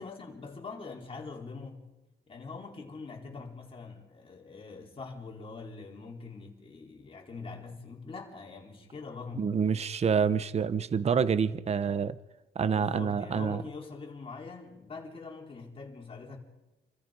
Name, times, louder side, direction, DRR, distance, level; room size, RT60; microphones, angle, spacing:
voice 1, 0.0-1.9 2.3-9.6 12.7-16.4, left 4 dB, 30° left, 4.5 m, -43 dB
voice 2, 9.4-12.2 12.5-13.6, right 6 dB, 35° right, 0.8 m, -27 dB
29.0 x 24.0 x 5.3 m
wide cardioid pair, 175°, 19 cm